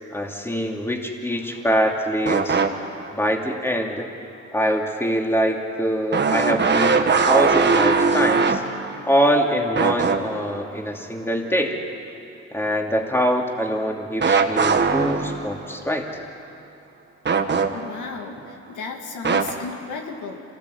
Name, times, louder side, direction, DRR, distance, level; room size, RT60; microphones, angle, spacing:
voice 1, 0.1-2.6 3.1-4.1 4.5-8.6 9.0-11.8 12.5-16.2, equal, 10° left, 1 dB, 2.8 m, -24 dB
sound 1, 2.3-3.1 3.6-3.7 6.1-9.4 9.8-10.6 14.2-15.7 17.3-18.1 19.2-19.5, right 5 dB, 35° right, 1.6 m, -20 dB
voice 2, 17.7-20.4, left 5 dB, 80° left, 3 dB, 2.5 m, -34 dB
27.0 x 19.0 x 8.4 m, 2.6 s
cardioid pair, 90°, 30 cm